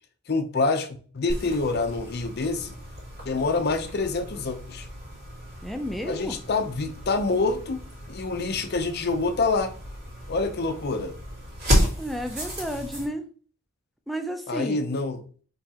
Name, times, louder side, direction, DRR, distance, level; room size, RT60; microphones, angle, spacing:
voice 1, 0.3-0.9 1.1-2.8 3.3-4.9 6.1-7.8 8.1-9.7 10.3-11.2 14.5-15.2, left 3 dB, 50° left, 0.6 m, -26 dB
sound 1, 1.3-13.1, equal, 50° right, 2.2 m, -32 dB
voice 2, 5.6-6.4 12.0-13.2 14.1-14.8, equal, ahead, 0.3 m, -32 dB
4.6 x 3.2 x 2.8 m
head